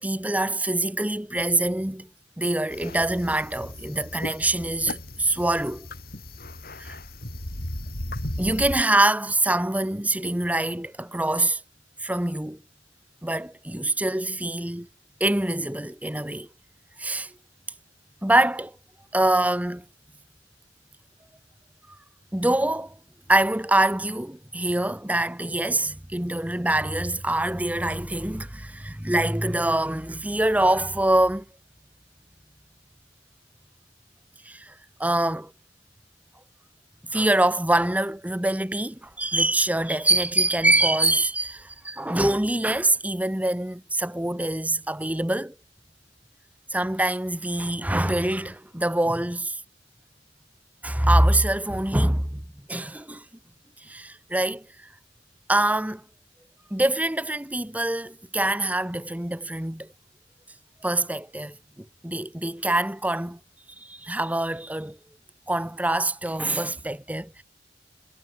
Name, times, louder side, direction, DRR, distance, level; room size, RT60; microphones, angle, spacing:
voice 1, 0.0-2.1 2.4-5.9 6.8-7.0 8.4-11.6 12.0-12.6 13.2-14.9 15.2-16.5 17.0-17.3 18.2-18.8 19.1-19.8 22.3-22.9 23.3-31.4 34.4-34.7 35.0-35.5 37.1-45.5 46.7-49.6 50.8-52.4 52.7-53.2 53.9-54.6 55.5-56.0 56.7-59.9 60.8-63.4 63.8-65.0 65.5-67.4, right 1 dB, 10° right, 1.0 m, -24 dB
sound 1, 2.7-8.8, left 1 dB, 55° left, 5.3 m, -36 dB
head